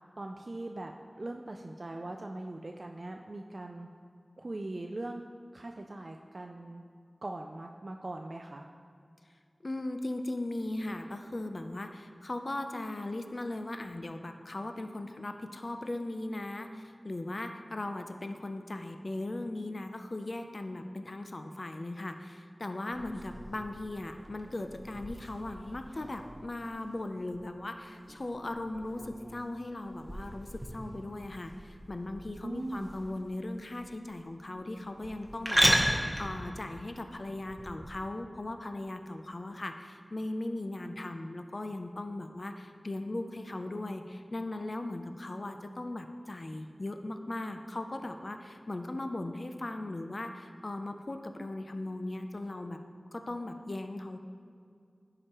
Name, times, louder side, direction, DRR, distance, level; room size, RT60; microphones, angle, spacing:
voice 1, 0.2-3.9 4.4-5.2 5.5-6.8 7.2-8.7 32.4-32.9, right 2 dB, 60° right, 3 dB, 0.3 m, -40 dB
voice 2, 9.6-52.8 53.1-54.2, left 2 dB, 60° left, 7 dB, 0.4 m, -38 dB
sound 1, 22.9-38.0, equal, 10° right, 0.9 m, -36 dB
11.0 x 4.8 x 3.0 m, 2.3 s
wide cardioid pair, 50°, 0 cm